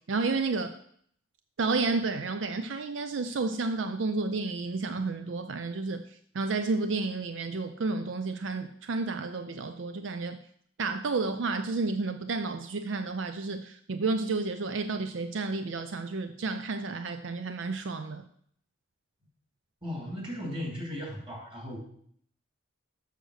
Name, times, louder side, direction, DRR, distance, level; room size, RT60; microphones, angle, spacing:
voice 1, 0.1-0.7 1.6-6.0 6.3-10.4 10.8-18.2, right 3 dB, 75° right, 9 dB, 0.5 m, -31 dB
voice 2, 19.8-21.8, left 1 dB, 25° right, -1 dB, 2.9 m, -36 dB
6.6 x 6.6 x 6.3 m, 0.64 s
head